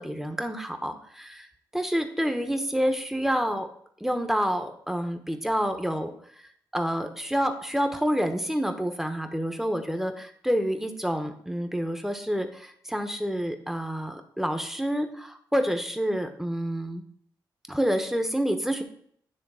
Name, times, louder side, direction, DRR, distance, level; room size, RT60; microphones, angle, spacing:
voice 1, 0.0-1.5 1.7-3.7 4.0-6.1 6.4-17.0 17.7-18.8, equal, 5° right, 6 dB, 1.1 m, -28 dB
9.9 x 3.4 x 4.9 m, 0.64 s
supercardioid pair, 50°, 9 cm